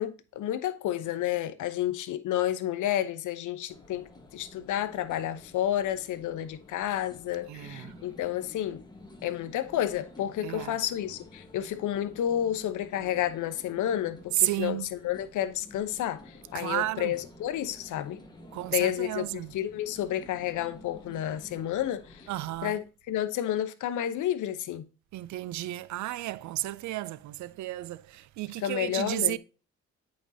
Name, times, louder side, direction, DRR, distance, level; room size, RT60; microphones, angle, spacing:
voice 1, 0.0-8.8 9.2-18.2 18.7-22.2 22.6-24.8 28.6-29.4, left 11 dB, 80° left, 0.8 m, -31 dB
sound 1, 3.7-22.6, left 2 dB, 15° left, 1.4 m, -51 dB
voice 2, 7.5-8.0 10.4-10.7 14.4-14.9 16.5-17.1 18.5-19.5 22.3-22.7 25.1-29.4, right 16 dB, 70° right, 0.5 m, -32 dB
8.6 x 5.2 x 2.7 m
cardioid pair, 90°, 30 cm